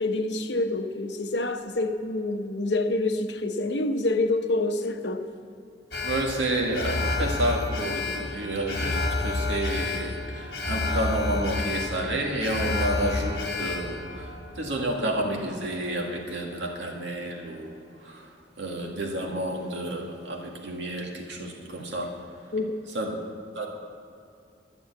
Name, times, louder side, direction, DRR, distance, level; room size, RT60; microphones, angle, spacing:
voice 1, 0.0-5.2 22.5-22.7, left 2 dB, 80° left, 0.8 m, -27 dB
Alarm, 5.9-16.2 16.5-16.6, left 2 dB, 60° left, 1.2 m, -30 dB
voice 2, 6.0-14.3 14.6-17.8 18.0-18.2 18.6-22.1 22.9-23.2 23.6-23.7, right 1 dB, 85° right, 1.9 m, -30 dB
12.5 x 7.0 x 8.2 m
head